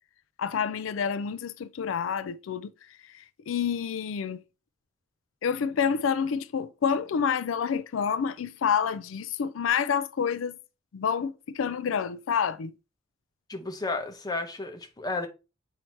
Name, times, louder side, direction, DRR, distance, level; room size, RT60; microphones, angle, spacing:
voice 1, 0.4-2.7 3.1-4.4 5.4-10.6 10.9-12.7, left 7 dB, 90° left, 0.4 m, -28 dB
voice 2, 13.5-15.3, left 3 dB, 20° left, 0.9 m, -32 dB
7.7 x 2.8 x 4.5 m
head